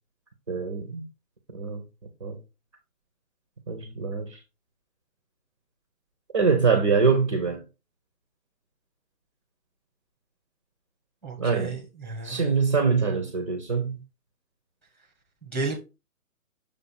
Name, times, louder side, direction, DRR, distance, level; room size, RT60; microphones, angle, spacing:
voice 1, 0.5-1.1 1.5-1.8 2.2-2.4 3.7-4.4 6.3-7.6 11.4-11.8 12.2-14.0, right 5 dB, 25° right, 0.6 m, -24 dB
voice 2, 11.2-12.5 15.4-15.8, right 3 dB, ahead, 1.0 m, -33 dB
6.7 x 2.7 x 5.6 m
hypercardioid pair, 165°, 42 cm